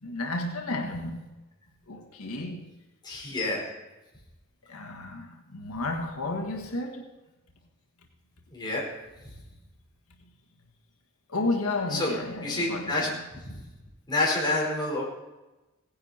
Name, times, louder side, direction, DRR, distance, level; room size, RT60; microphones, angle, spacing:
voice 1, 0.0-1.3 1.9-2.7 4.7-7.1 11.3-13.2, left 2 dB, 85° left, 1.7 m, -32 dB
voice 2, 3.0-3.7 8.5-8.9 11.9-12.1 12.4-13.1 13.4-13.6 14.1-15.0, left 2 dB, 20° left, 4.6 m, -28 dB
17.5 x 10.5 x 4.3 m
head